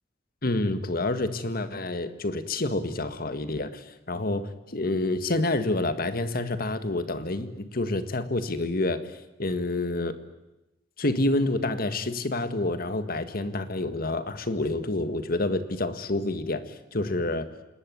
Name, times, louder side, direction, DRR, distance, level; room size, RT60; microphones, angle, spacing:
voice 1, 0.4-9.0 9.4-10.2 11.0-16.6 16.9-17.5, left 2 dB, 55° left, 11 dB, 1.8 m, -28 dB
27.5 x 20.0 x 9.4 m, 0.97 s
head